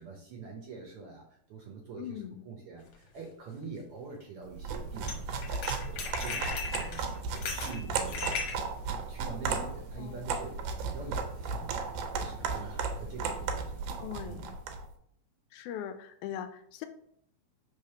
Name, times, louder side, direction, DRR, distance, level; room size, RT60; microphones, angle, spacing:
voice 1, 0.0-5.6 5.9-8.7 9.1-13.8 14.2-14.4, right 4 dB, 70° right, 1 dB, 1.4 m, -45 dB
voice 2, 2.0-2.4 9.5-10.2 14.0-14.6 15.5-16.9, left 10 dB, 85° left, 9 dB, 1.9 m, -41 dB
sound 1, 2.9-3.0 5.0-5.1 5.4-8.6, left 5 dB, 60° left, 1.9 m, -36 dB
sound 2, 4.5-14.9, right 5 dB, 90° right, 2.3 m, -35 dB
5.3 x 3.5 x 5.6 m, 0.68 s
omnidirectional pair, 3.5 m